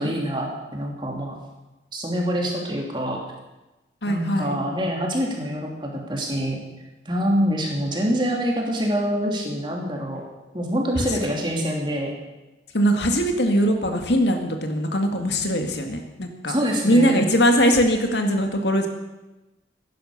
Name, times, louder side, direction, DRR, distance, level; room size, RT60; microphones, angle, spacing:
voice 1, 0.0-1.3 1.9-3.2 4.1-6.6 7.0-10.2 10.5-12.1 16.5-17.2, equal, 25° right, 0 dB, 2.8 m, -25 dB
voice 2, 4.0-4.6 12.7-16.5 16.8-18.9, equal, 80° left, 4 dB, 2.1 m, -21 dB
15.5 x 11.0 x 6.7 m, 1.1 s
head